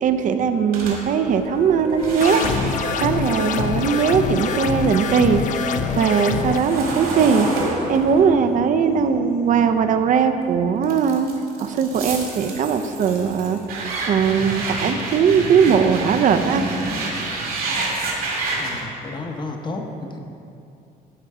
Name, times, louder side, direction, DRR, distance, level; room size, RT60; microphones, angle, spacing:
voice 1, 0.0-5.4 6.0-7.5 7.9-11.3 11.6-13.6 14.1-16.7, right 6 dB, 50° right, 8 dB, 0.5 m, -19 dB
sound 1, 0.7-5.0 5.3-10.3 10.8-18.8, right 2 dB, 65° right, 1.9 m, -29 dB
Wind instrument woodwind instrument, 1.0-7.5, left 3 dB, 85° left, 1.7 m, -38 dB
sound 2, 2.2-6.6, left 7 dB, 50° left, 0.4 m, -25 dB
voice 2, 18.6-20.2, left 2 dB, 25° left, 3 dB, 0.9 m, -32 dB
13.0 x 4.5 x 3.6 m, 2.6 s
cardioid pair, 110°, 17 cm